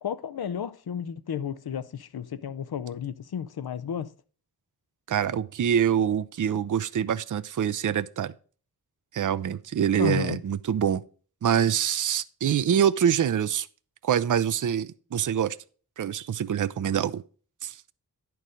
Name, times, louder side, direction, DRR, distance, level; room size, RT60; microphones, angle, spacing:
voice 1, 0.0-4.1 10.0-10.4, left 8 dB, 80° left, 0.6 m, -32 dB
voice 2, 5.1-8.3 9.1-11.0 11.4-13.7 14.0-15.6 16.0-17.2 17.6-17.8, right 9 dB, 55° right, 0.5 m, -25 dB
10.5 x 4.7 x 4.9 m
wide cardioid pair, 55°, 37 cm